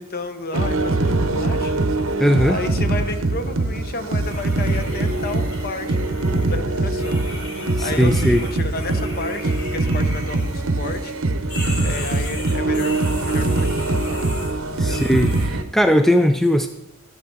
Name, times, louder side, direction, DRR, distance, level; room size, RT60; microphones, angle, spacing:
voice 1, 0.0-1.7 2.4-7.2 7.8-11.1 11.8-14.3 14.8-15.0, left 3 dB, 45° left, 9 dB, 0.9 m, -32 dB
sound 1, 0.5-15.6, right 2 dB, 65° right, 0.8 m, -22 dB
voice 2, 2.2-2.6 7.8-8.4 14.8-16.7, equal, ahead, 7 dB, 0.3 m, -18 dB
sound 2, 4.2-11.2 11.5-15.5, left 1 dB, 80° left, 4.7 m, -37 dB
12.0 x 12.0 x 3.7 m, 0.94 s
head